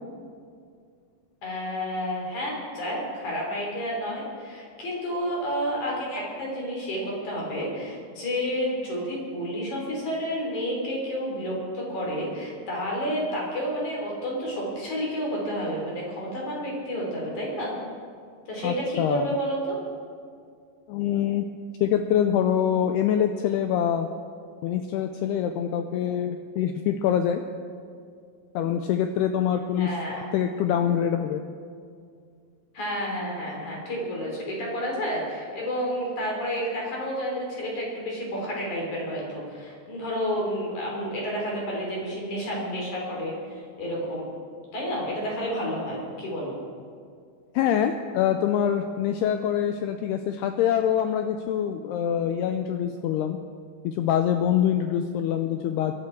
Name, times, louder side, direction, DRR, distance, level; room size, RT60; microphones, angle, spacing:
voice 1, 1.4-17.8 18.5-19.8 29.8-30.3 32.7-44.3 44.7-46.5, equal, 45° left, -2 dB, 4.6 m, -30 dB
voice 2, 18.6-19.3 20.9-21.5 21.8-24.1 24.6-27.4 28.6-31.4 47.5-53.4 53.8-55.9, left 9 dB, 85° left, 7 dB, 2.3 m, -25 dB
22.0 x 12.0 x 4.6 m, 2.2 s
omnidirectional pair, 5.2 m